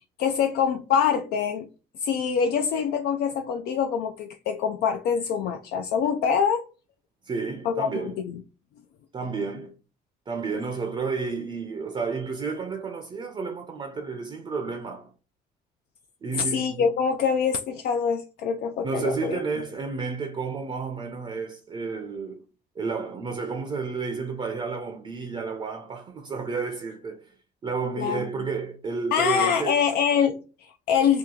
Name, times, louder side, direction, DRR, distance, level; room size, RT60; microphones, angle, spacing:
voice 1, 0.2-1.7 2.0-6.6 7.7-8.3 16.4-19.4 28.0-28.3 29.1-31.2, left 7 dB, 70° left, 0.4 m, -25 dB
voice 2, 7.2-8.2 9.1-9.7 10.3-15.1 16.2-16.9 18.8-22.4 22.8-27.3 27.6-29.8, right 4 dB, 30° right, 0.5 m, -31 dB
2.9 x 2.3 x 3.6 m
cardioid pair, 110°, 17 cm